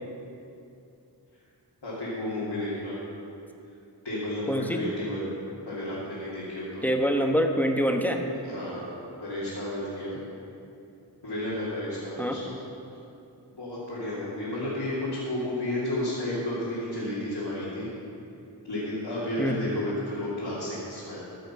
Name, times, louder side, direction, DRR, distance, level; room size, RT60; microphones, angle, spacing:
voice 1, 1.8-3.0 4.0-5.3 5.6-6.8 8.4-10.2 11.2-12.6 13.5-17.9 18.6-21.2, left 1 dB, 80° left, -10 dB, 2.8 m, -32 dB
voice 2, 4.5-4.8 6.8-8.2 12.2-12.4 19.4-19.6, equal, 5° left, 3 dB, 1.1 m, -25 dB
14.5 x 6.6 x 5.8 m, 2.6 s
wide cardioid pair, 40°, 42 cm